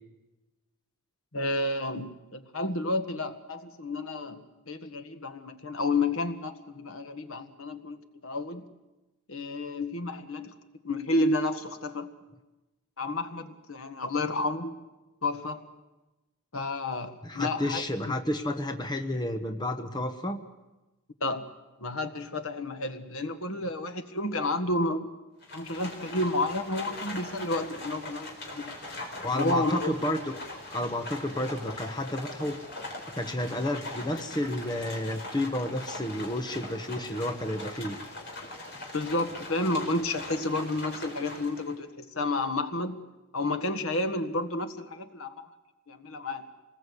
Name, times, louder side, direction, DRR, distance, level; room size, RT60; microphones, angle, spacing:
voice 1, 1.3-8.0 8.2-8.6 9.3-10.5 10.8-12.1 13.0-14.8 15.2-15.6 16.5-17.8 21.2-21.5 21.8-25.1 25.5-28.7 29.2-29.9 38.9-43.0 43.3-45.5 45.9-46.4, left 2 dB, 75° left, 8 dB, 1.6 m, -31 dB
voice 2, 17.2-20.4 29.2-30.3 30.7-32.6 33.1-38.0, left 1 dB, 20° left, 6 dB, 1.2 m, -31 dB
Livestock farm animals working animals, 25.4-41.8, left 2 dB, 50° left, 4.6 m, -41 dB
26.5 x 20.0 x 8.3 m, 1.1 s
head